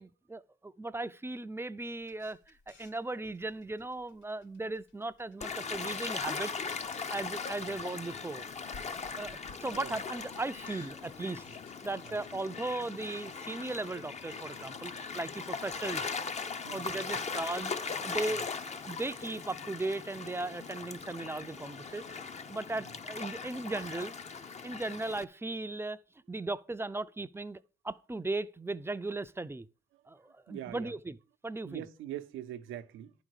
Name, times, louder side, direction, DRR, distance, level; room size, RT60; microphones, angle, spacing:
voice 1, 0.0-2.4 2.7-6.5 7.1-8.5 9.2-11.4 11.8-16.1 16.7-22.1 22.5-24.1 24.6-26.0 26.3-27.6 27.8-29.7 30.1-31.2 31.4-31.8, right 2 dB, 10° right, 0.5 m, -37 dB
Camera, 2.0-12.4, left 4 dB, 70° left, 3.1 m, -59 dB
Gull seagull / Waves surf, 5.4-25.2, left 5 dB, 35° left, 0.7 m, -39 dB
voice 2, 16.6-17.3 18.3-18.4 22.7-22.9 29.9-30.0 30.5-30.9 31.6-33.1, right 12 dB, 90° right, 0.7 m, -43 dB
sound 1, 17.5-22.8, left 4 dB, 90° left, 2.0 m, -61 dB
10.5 x 5.1 x 6.4 m
cardioid pair, 90°, 20 cm